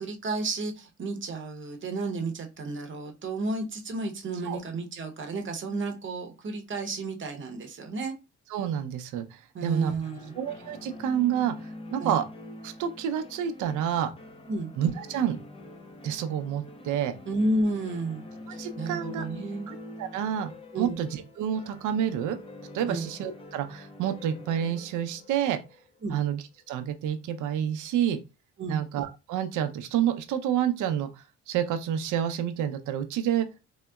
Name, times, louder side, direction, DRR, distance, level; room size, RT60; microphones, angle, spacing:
voice 1, 0.0-8.1 9.5-10.3 12.0-12.2 14.5-14.7 17.3-18.2 18.5-19.7 20.7-21.0 22.9-23.1 26.0-26.2 28.6-28.8, right 2 dB, 40° right, 0.8 m, -32 dB
voice 2, 8.5-9.9 10.4-12.2 12.6-14.1 14.8-15.4 16.0-17.1 18.5-19.2 19.7-22.4 22.7-25.6 26.1-28.2 28.7-33.5, right 9 dB, 80° right, 0.5 m, -29 dB
sound 1, 10.0-26.7, left 1 dB, 20° left, 0.4 m, -45 dB
3.7 x 2.1 x 2.2 m
cardioid pair, 90°, 30 cm